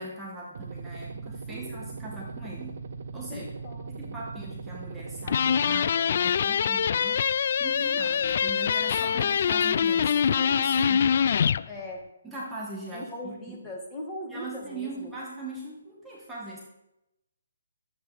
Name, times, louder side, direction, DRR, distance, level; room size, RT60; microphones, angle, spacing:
voice 1, 0.0-2.8 3.1-3.5 3.9-7.2 7.6-11.2 12.2-13.6 14.3-16.6, right 2 dB, 5° right, -5 dB, 1.8 m, -40 dB
sound 1, 0.5-5.8, right 4 dB, 50° right, 0.9 m, -39 dB
voice 2, 3.3-4.2 11.7-12.0 12.9-15.1, left 1 dB, 10° left, -2 dB, 2.2 m, -39 dB
sound 2, 5.3-11.6, left 7 dB, 50° left, 0.3 m, -24 dB
12.5 x 8.5 x 5.1 m, 0.91 s
hypercardioid pair, 150°, 0 cm